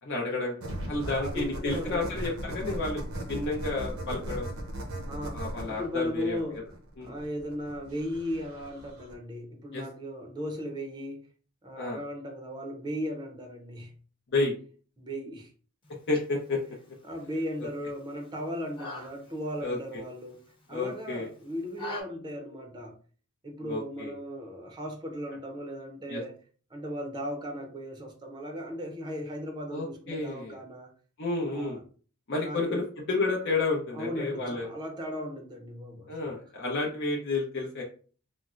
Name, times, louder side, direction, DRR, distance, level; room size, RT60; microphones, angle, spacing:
voice 1, 0.0-4.5 5.3-6.6 7.0-7.2 9.7-9.8 11.8-12.0 14.3-14.5 16.1-16.6 17.6-17.7 19.6-20.0 20.7-21.3 23.7-24.1 26.1-26.2 29.7-30.6 31.2-31.8 32.3-34.7 36.1-37.8, left 3 dB, 60° left, 0.6 m, -31 dB
sound 1, 0.6-9.1, right 1 dB, 80° right, 0.8 m, -37 dB
voice 2, 1.0-2.1 5.1-5.4 5.7-6.6 7.0-11.3 11.6-13.9 15.0-15.5 17.0-20.4 20.7-23.0 23.4-26.3 26.7-30.9 31.5-31.8 32.4-32.9 33.9-36.2, equal, 20° right, 0.6 m, -37 dB
sound 2, 15.8-22.0, left 3 dB, 25° left, 0.8 m, -46 dB
4.1 x 2.0 x 2.4 m
head